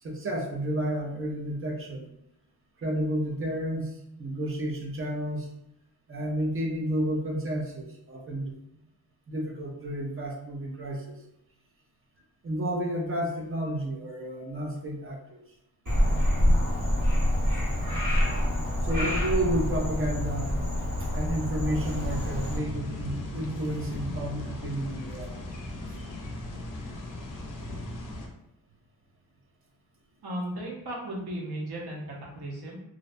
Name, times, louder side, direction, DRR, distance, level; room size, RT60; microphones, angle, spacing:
voice 1, 0.0-2.1 2.8-5.5 6.1-8.5 9.3-11.2 12.4-15.4 18.8-20.6 21.1-25.4, right 1 dB, 35° right, 1 dB, 0.5 m, -31 dB
Frog, 15.9-22.6, equal, 55° right, 1.5 m, -26 dB
sound 1, 21.7-28.3, left 1 dB, 55° left, 0.5 m, -37 dB
voice 2, 30.2-32.8, right 1 dB, 80° right, -3 dB, 0.8 m, -35 dB
2.6 x 2.1 x 2.5 m, 0.82 s
wide cardioid pair, 125°, 38 cm